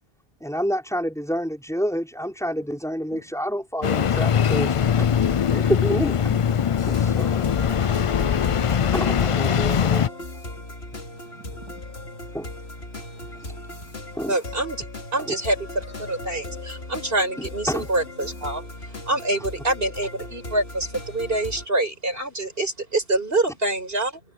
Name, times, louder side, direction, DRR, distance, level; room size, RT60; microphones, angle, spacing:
voice 1, 0.4-5.1 5.5-6.3 6.9-7.4 8.9-10.1 12.3-12.5 13.2-13.5 14.1-14.4 15.3-15.4 17.4-17.9, equal, 5° left, 5.6 m, -28 dB
Engine starting, 3.8-10.1, left 8 dB, 50° left, 0.4 m, -21 dB
sound 1, 6.8-21.7, left 2 dB, 75° left, 3.1 m, -37 dB
voice 2, 11.1-11.7 13.4-14.0, right 2 dB, 25° right, 2.0 m, -48 dB
voice 3, 14.3-14.9 15.1-24.2, right 2 dB, 60° right, 6.0 m, -26 dB
omnidirectional pair, 1.1 m